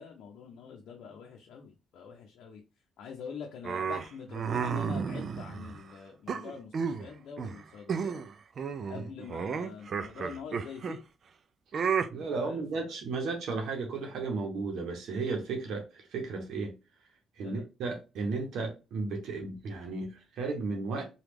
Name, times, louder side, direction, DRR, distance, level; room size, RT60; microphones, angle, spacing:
voice 1, 0.0-2.6 3.0-8.2 8.9-11.0 12.2-12.8 17.4-17.6, left 6 dB, 80° left, 0.6 m, -45 dB
sound 1, 3.6-5.8 6.3-7.1 7.4-7.6 7.9-8.3 8.6-11.0 11.7-12.1, right 6 dB, 50° right, 0.3 m, -32 dB
voice 2, 11.7-16.7 17.4-21.0, right 3 dB, 75° right, 0.8 m, -34 dB
3.0 x 2.3 x 3.3 m
cardioid pair, 90°, 0 cm